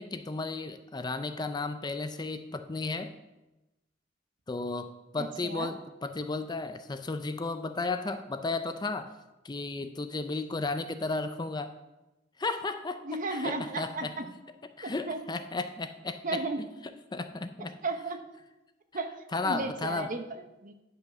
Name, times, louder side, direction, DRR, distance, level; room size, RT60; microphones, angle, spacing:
voice 1, 0.0-3.1 4.5-9.1 9.4-11.8 12.4-13.0 13.3-14.3 14.8-16.7 17.1-17.8 19.3-20.1, left 3 dB, 25° left, 9 dB, 0.5 m, -34 dB
voice 2, 5.2-5.7 13.0-14.2 14.8-15.2 16.2-16.6 17.8-18.2 18.9-19.1 19.4-20.7, right 2 dB, 45° right, 7 dB, 0.9 m, -34 dB
10.5 x 5.6 x 6.1 m, 1.0 s
head